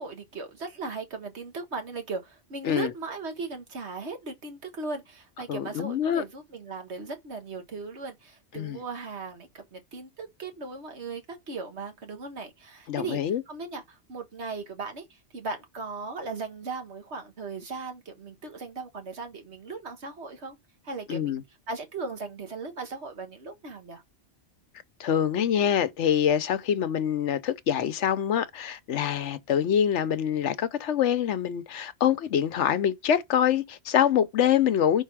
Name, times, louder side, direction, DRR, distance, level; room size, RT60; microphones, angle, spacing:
voice 1, 0.0-20.6 20.8-21.4 21.7-24.0, right 3 dB, 70° right, 1.8 m, -37 dB
voice 2, 5.5-6.2 8.5-8.8 12.9-13.4 21.1-21.4 25.0-35.0, left 9 dB, 85° left, 1.1 m, -25 dB
5.6 x 4.0 x 4.8 m
omnidirectional pair, 1.2 m